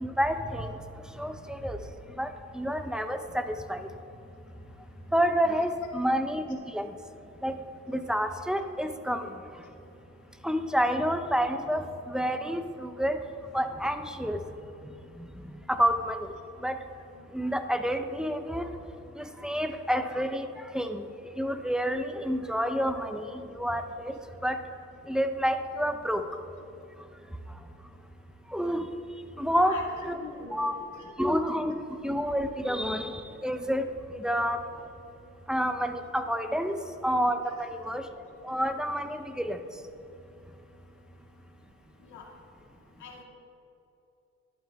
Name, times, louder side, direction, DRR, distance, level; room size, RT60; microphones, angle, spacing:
voice 1, 0.0-0.7 1.2-1.8 2.2-2.3 2.5-3.9 5.1-6.9 7.4-7.6 7.9-9.3 10.4-13.2 13.5-14.4 15.2-15.3 15.7-16.3 16.6-16.8 17.3-18.6 19.2-20.5 20.7-21.0 21.4-24.1 24.4-24.6 25.1-26.2 28.5-28.9 29.4-30.2 30.5-30.7 31.2-31.8 32.0-34.6 35.5-38.0 38.4-39.6, equal, ahead, 8 dB, 0.7 m, -29 dB
voice 2, 29.5-29.9 30.2-30.6 42.1-42.2 43.0-43.2, left 5 dB, 75° left, -1 dB, 2.1 m, -42 dB
11.5 x 11.0 x 3.6 m, 2.8 s
cardioid pair, 90°, 30 cm